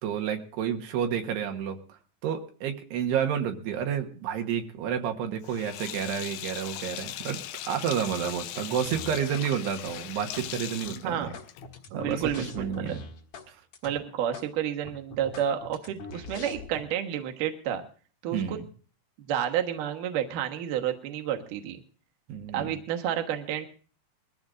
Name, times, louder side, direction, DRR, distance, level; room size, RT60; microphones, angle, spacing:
voice 1, 0.0-2.0 2.2-11.3 11.9-13.0 13.5-13.6 18.3-18.7 22.3-22.8, right 8 dB, 80° right, 5 dB, 3.3 m, -30 dB
Sink (filling or washing), 5.4-11.8, left 13 dB, 80° left, 2.7 m, -39 dB
sound 1, 8.9-9.5 9.7-10.5 10.9-13.5 13.7-13.9 14.3-14.5 14.8-16.8, left 3 dB, 55° left, 2.7 m, -43 dB
voice 2, 11.0-11.4 11.9-13.0 13.8-17.8 18.2-18.6 19.3-21.8 22.5-23.7, right 10 dB, 65° right, 4 dB, 2.5 m, -30 dB
22.0 x 14.5 x 2.5 m, 0.39 s
omnidirectional pair, 4.7 m